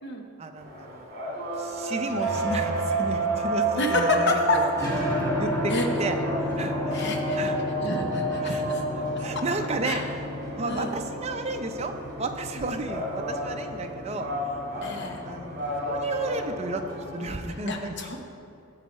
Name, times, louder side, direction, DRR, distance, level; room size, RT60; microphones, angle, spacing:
voice 1, 0.4-4.7 5.0-7.6 8.4-8.7 9.2-10.0 10.6-14.3 14.7-16.8 17.1-18.0, right 2 dB, 30° right, 5 dB, 0.6 m, -33 dB
sound 1, 0.6-17.2, right 1 dB, 45° right, 2.4 m, -31 dB
sound 2, 1.9-17.5, equal, 15° left, 1.6 m, -34 dB
voice 2, 3.8-4.6 5.7-5.9 6.9-7.4 7.8-8.8 9.1-9.3 9.8-10.0 10.7-11.0 14.8-15.2 17.7-18.2, left 3 dB, 55° left, 2 dB, 1.0 m, -28 dB
11.5 x 7.2 x 4.3 m, 2.8 s
head